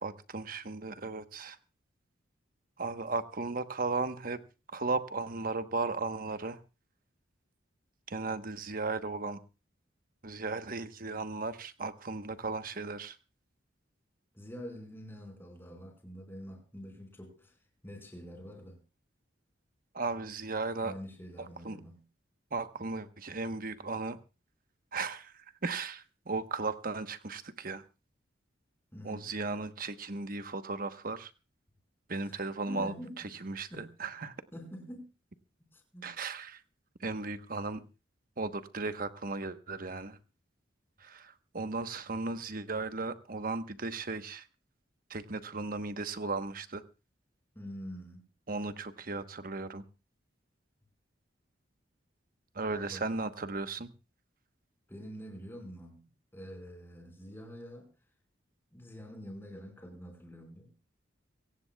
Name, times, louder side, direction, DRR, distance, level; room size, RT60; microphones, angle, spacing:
voice 1, 0.0-1.6 2.8-4.4 4.7-6.6 8.1-9.4 10.2-13.2 19.9-21.0 21.4-21.8 22.5-24.2 24.9-27.8 29.0-31.3 32.1-34.3 36.0-36.6 37.0-37.8 38.4-40.2 41.0-44.5 45.1-46.8 48.5-49.8 52.5-53.9, right 3 dB, 50° right, 1.1 m, -36 dB
voice 2, 14.3-17.5 17.8-18.8 20.8-22.0 28.9-29.3 32.2-32.4 32.6-33.3 33.7-33.9 34.5-35.1 35.7-36.1 47.5-48.2 52.7-53.1 54.9-56.0 56.3-57.9 58.7-60.7, equal, 10° left, 4.9 m, -46 dB
24.0 x 17.5 x 2.3 m
head